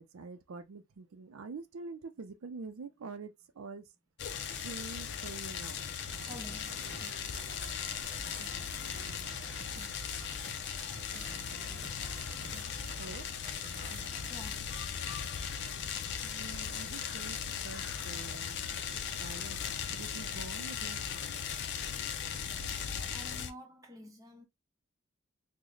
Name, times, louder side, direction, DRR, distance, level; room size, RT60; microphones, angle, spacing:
voice 1, 0.0-3.8 4.5-5.8 13.0-13.3 16.2-17.4 17.6-18.6 19.2-19.6 19.9-21.0, right 4 dB, 90° right, 0.5 m, -46 dB
sound 1, 4.2-23.5, left 7 dB, 55° left, 0.5 m, -38 dB
voice 2, 6.1-6.9 14.3-14.8 23.1-24.5, left 1 dB, 15° right, 0.8 m, -49 dB
sound 2, 6.1-14.3, right 4 dB, 40° right, 0.5 m, -50 dB
sound 3, 6.8-9.8 11.5-12.9, left 2 dB, 90° left, 0.7 m, -57 dB
3.8 x 2.1 x 3.1 m
head